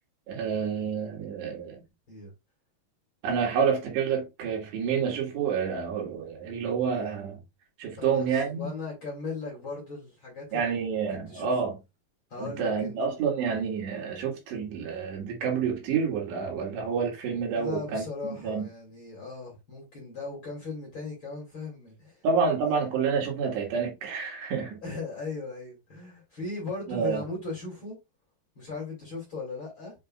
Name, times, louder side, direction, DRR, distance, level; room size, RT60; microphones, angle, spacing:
voice 1, 0.3-1.8 3.2-7.4 7.8-8.7 10.5-11.8 12.4-18.7 22.2-24.8 26.9-27.2, right 6 dB, 75° right, 4.0 m, -28 dB
voice 2, 8.0-10.7 11.1-11.6 12.3-12.9 17.5-22.3 22.6-23.0 24.8-28.0 28.6-29.9, left 3 dB, 35° left, 2.5 m, -38 dB
7.5 x 5.4 x 2.4 m
omnidirectional pair, 5.0 m